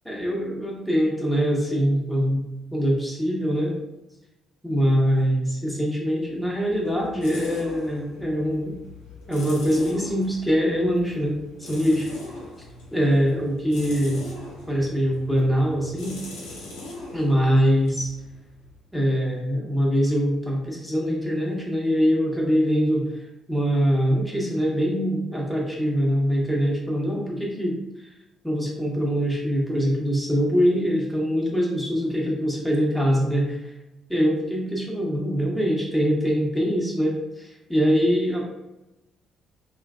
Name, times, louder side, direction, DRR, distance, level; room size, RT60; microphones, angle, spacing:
voice 1, 0.0-2.4 2.7-3.8 4.6-8.8 9.3-12.1 12.9-14.2 14.7-16.2 17.1-18.1 18.9-23.1 23.5-27.8 28.4-33.7 34.1-38.4, equal, ahead, -2 dB, 1.0 m, -23 dB
sound 1, 6.3-18.9, left 1 dB, 80° left, 0.6 m, -41 dB
3.1 x 2.3 x 2.3 m, 0.94 s
hypercardioid pair, 50°, 0 cm